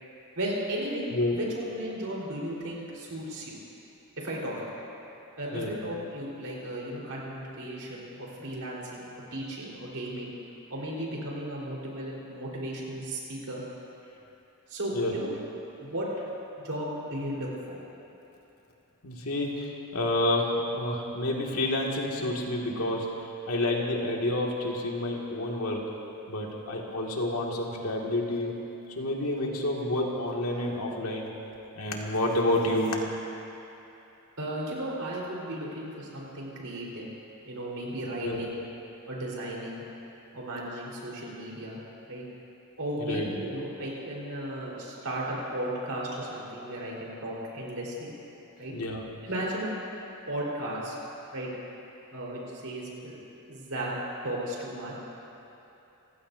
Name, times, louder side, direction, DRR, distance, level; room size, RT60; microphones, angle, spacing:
voice 1, 0.4-1.1 1.3-3.6 4.2-4.8 5.4-10.3 10.7-13.6 14.7-15.3 15.8-16.1 16.6-17.8 34.4-37.1 37.5-38.6 39.1-39.8 40.3-41.8 42.1-42.2 42.8-48.1 48.6-48.7 49.2-49.7 50.3-51.0 51.3-51.5 52.1-53.2 53.4-54.0 54.2-54.9, right 1 dB, 75° right, -4 dB, 4.3 m, -35 dB
voice 2, 19.0-25.8 26.3-28.5 29.0-31.3 31.8-32.9 38.2-38.4 43.1-43.3 48.7-49.0, left 1 dB, 85° left, -2 dB, 2.2 m, -29 dB
28.0 x 16.0 x 2.7 m, 2.9 s
head